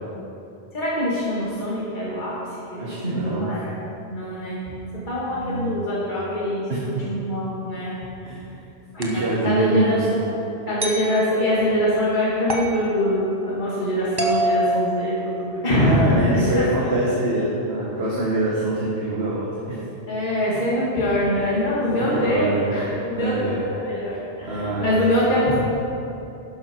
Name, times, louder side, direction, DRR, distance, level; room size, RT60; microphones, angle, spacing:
voice 1, 0.7-3.7 4.1-4.6 5.0-7.9 8.9-10.2 10.7-17.0 20.1-25.6, left 1 dB, 50° left, -8 dB, 2.6 m, -24 dB
voice 2, 2.8-3.5 5.4-5.7 6.7-7.1 8.2-8.4 9.0-10.0 15.8-19.8 21.9-22.7 23.1-23.6 24.5-24.9, right 1 dB, 80° right, -6 dB, 2.0 m, -24 dB
sound 1, 9.0-9.3 10.8-11.1 12.5-12.8 14.2-15.6, right 2 dB, 25° right, 1.1 m, -25 dB
12.0 x 11.0 x 4.7 m, 2.7 s
omnidirectional pair, 1.0 m